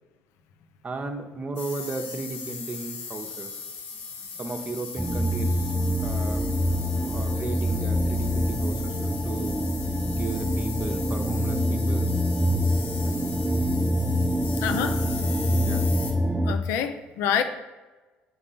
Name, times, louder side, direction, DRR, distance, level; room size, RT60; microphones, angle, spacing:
voice 1, 0.8-3.6 4.4-5.8 6.0-6.4 7.0-9.6 10.1-12.1 15.6-15.9, right 3 dB, 30° right, 4 dB, 0.9 m, -35 dB
sound 1, 1.6-16.1, left 5 dB, 55° left, 1.3 m, -38 dB
sound 2, 5.0-16.5, equal, 10° right, 0.5 m, -25 dB
voice 2, 14.6-15.0 16.5-17.4, left 8 dB, 70° left, 8 dB, 0.5 m, -26 dB
5.4 x 3.6 x 5.6 m, 1.2 s
hypercardioid pair, 60°, 5 cm